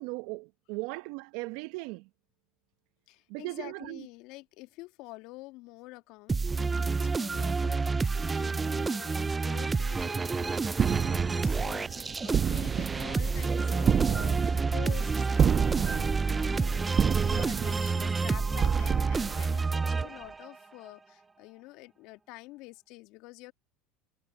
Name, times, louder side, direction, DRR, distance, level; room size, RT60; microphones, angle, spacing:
voice 1, 0.0-2.1 3.3-4.1, right 26 dB, 65° right, 0.8 m, -38 dB
voice 2, 3.1-23.5, left 21 dB, 60° left, 2.0 m, -48 dB
sound 1, 6.3-20.6, right 4 dB, 20° right, 0.3 m, -29 dB
sound 2, 10.7-20.1, right 8 dB, 35° right, 1.0 m, -30 dB
hypercardioid pair, 80°, 0 cm